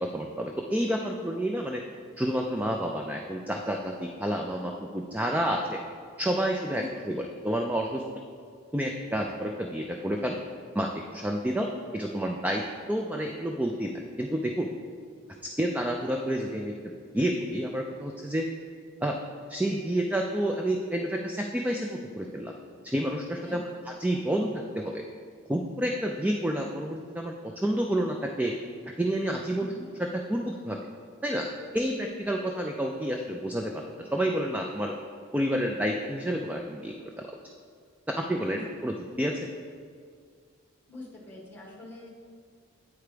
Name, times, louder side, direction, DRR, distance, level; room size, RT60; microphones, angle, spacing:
voice 1, 0.0-1.8 2.2-5.8 6.2-8.0 8.7-10.4 10.7-11.7 11.9-12.6 12.9-13.9 14.2-14.7 15.6-16.7 17.1-18.5 19.0-19.2 19.5-22.5 22.8-25.0 25.5-27.3 27.6-28.5 29.0-29.7 30.3-30.8 31.2-31.5 31.7-34.9 35.3-37.3 38.2-39.3, right 1 dB, 10° right, 1 dB, 0.3 m, -29 dB
voice 2, 6.7-7.2 23.4-23.8 29.5-29.9 38.4-38.6 40.9-42.1, left 2 dB, 10° left, -3 dB, 1.4 m, -44 dB
8.4 x 4.6 x 5.0 m, 2.1 s
head